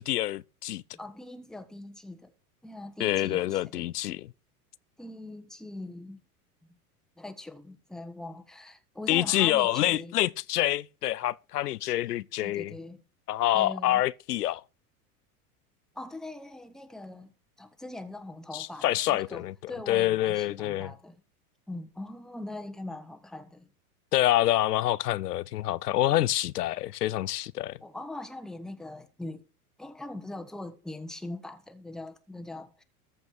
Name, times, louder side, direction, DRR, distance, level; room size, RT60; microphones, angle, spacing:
voice 1, 0.0-0.8 3.0-4.3 9.1-12.7 13.3-14.6 18.5-20.9 24.1-27.8, left 14 dB, 85° left, 0.6 m, -27 dB
voice 2, 0.9-2.3 2.6-3.9 5.0-6.2 7.2-10.1 12.4-13.0 13.5-14.0 15.9-17.3 17.6-21.2 21.7-23.7 27.8-29.4 29.8-32.8, left 2 dB, ahead, 1.2 m, -41 dB
14.0 x 5.3 x 6.2 m
hypercardioid pair, 90°, 46 cm